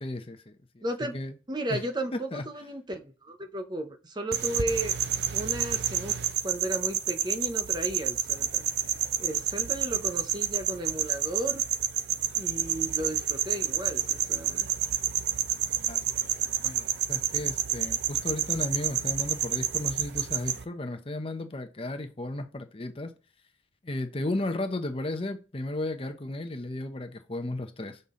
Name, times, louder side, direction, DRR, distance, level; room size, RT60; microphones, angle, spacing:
voice 1, 0.0-0.8 1.1-1.3 1.7-1.8 2.1-2.4 15.7-23.1 23.8-28.0, left 2 dB, 30° left, 0.8 m, -34 dB
voice 2, 0.8-1.2 1.5-4.9 5.3-6.2 6.4-8.7 9.2-11.6 12.4-14.7, right 1 dB, 25° right, 0.8 m, -34 dB
sound 1, 4.3-20.6, right 9 dB, 65° right, 0.6 m, -29 dB
6.1 x 5.4 x 3.7 m
head